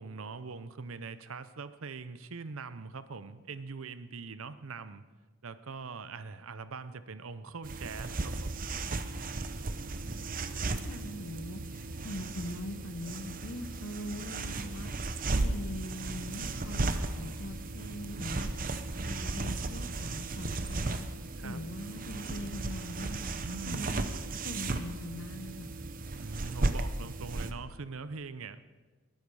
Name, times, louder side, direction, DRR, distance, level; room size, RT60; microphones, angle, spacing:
voice 1, 0.0-5.0 5.4-8.7 21.4-21.6 23.4-24.0 26.2-28.6, right 4 dB, 80° right, 13 dB, 0.7 m, -42 dB
sound 1, 7.6-27.5, right 2 dB, 40° right, 0.8 m, -35 dB
voice 2, 10.1-14.9 15.3-18.5 19.0-21.1 21.4-23.3 23.7-24.1 24.4-25.7, left 1 dB, 55° left, 10 dB, 1.0 m, -42 dB
20.5 x 12.0 x 4.8 m, 1.3 s
head